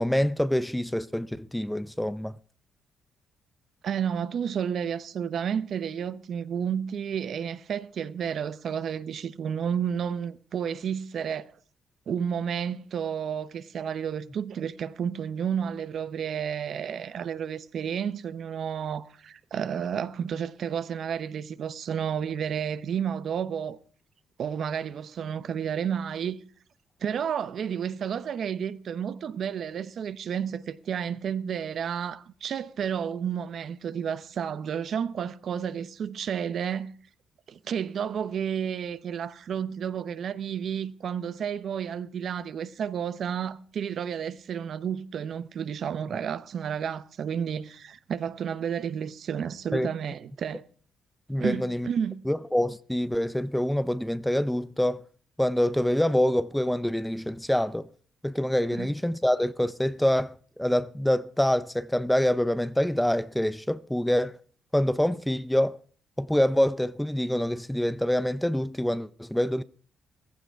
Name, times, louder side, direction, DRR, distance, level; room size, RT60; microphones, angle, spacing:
voice 1, 0.0-2.4 49.7-49.9 51.3-51.9 52.3-55.0 55.4-57.9 58.2-64.4 64.7-65.7 66.2-69.6, left 1 dB, 5° left, 0.6 m, -26 dB
voice 2, 3.8-11.5 12.1-23.8 24.4-26.4 27.0-36.9 37.5-50.6 51.4-52.2 58.8-58.9, right 8 dB, 60° right, 0.9 m, -31 dB
15.5 x 14.5 x 4.6 m
cardioid pair, 90°, 0 cm